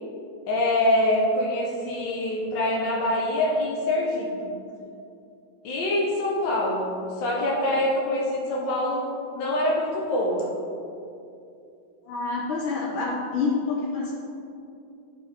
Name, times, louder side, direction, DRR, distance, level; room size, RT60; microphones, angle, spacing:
voice 1, 0.5-4.5 5.6-9.0 9.3-10.5, left 1 dB, 65° left, -3 dB, 1.7 m, -25 dB
voice 2, 12.0-14.1, left 4 dB, 85° left, -5 dB, 1.8 m, -27 dB
11.5 x 5.7 x 3.5 m, 2.6 s
omnidirectional pair, 2.2 m